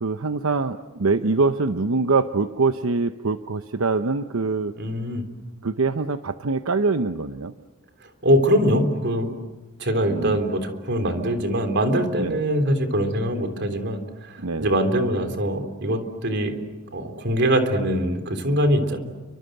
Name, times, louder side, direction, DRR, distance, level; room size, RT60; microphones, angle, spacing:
voice 1, 0.0-4.7 5.6-7.5 10.1-10.4 12.2-12.4 14.4-14.7, right 3 dB, 85° right, 9 dB, 0.9 m, -24 dB
voice 2, 4.7-5.2 8.2-9.3 9.8-14.0 14.3-16.6 16.9-19.0, equal, 55° right, 7 dB, 3.5 m, -23 dB
30.0 x 25.0 x 7.9 m, 1.2 s
head